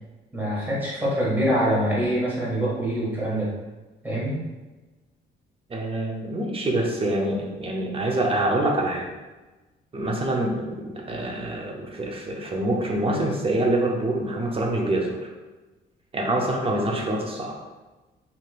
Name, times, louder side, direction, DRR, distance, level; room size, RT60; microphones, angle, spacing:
voice 1, 0.3-3.5 4.0-4.4, equal, 10° right, -7 dB, 1.5 m, -24 dB
voice 2, 5.7-9.1 9.9-10.8 11.1-15.2 16.1-17.5, right 1 dB, 30° right, 0 dB, 0.7 m, -25 dB
3.2 x 2.8 x 2.4 m, 1.2 s
cardioid pair, 90°, 20 cm